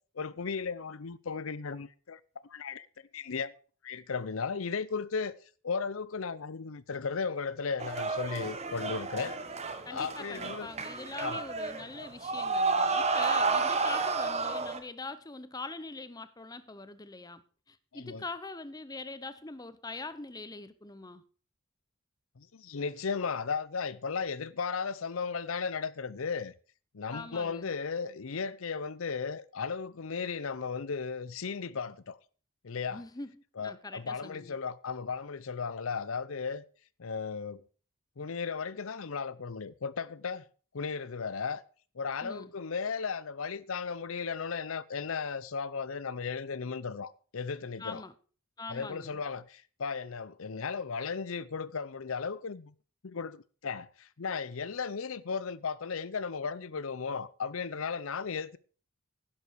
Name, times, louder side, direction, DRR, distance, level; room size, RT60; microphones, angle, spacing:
voice 1, 0.1-2.2 2.5-2.9 3.1-3.5 3.8-5.3 5.6-9.4 9.9-10.7 11.2-11.4 17.9-18.2 22.4-26.5 26.9-32.2 32.6-33.0 33.6-36.6 37.0-37.6 38.2-40.5 40.7-41.6 41.9-48.0 48.7-52.7 53.0-58.6, left 5 dB, 75° left, 0.7 m, -35 dB
sound 1, 7.8-14.8, right 4 dB, 30° right, 1.2 m, -31 dB
voice 2, 9.8-21.2 27.1-27.7 32.9-34.5 42.2-42.5 47.8-48.1 48.6-49.2, left 3 dB, 20° left, 0.8 m, -43 dB
11.5 x 10.5 x 4.7 m
head